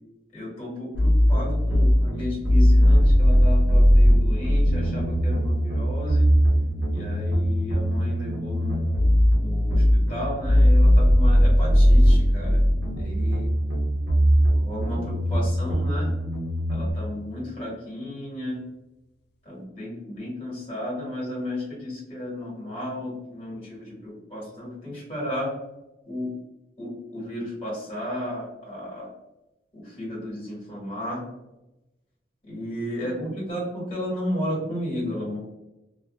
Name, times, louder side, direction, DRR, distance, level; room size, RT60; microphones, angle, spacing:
voice 1, 0.3-6.3 6.9-12.6 13.0-13.5 14.5-16.1 16.7-18.7 19.4-25.5 26.0-26.3 26.8-29.1 29.7-31.2 32.4-35.4, left 1 dB, 30° left, -7 dB, 1.4 m, -33 dB
sound 1, 0.9-16.9, equal, 75° right, 0.7 m, -19 dB
sound 2, 4.7-14.7, right 1 dB, 55° left, 0.3 m, -39 dB
2.4 x 2.4 x 2.2 m, 0.97 s
head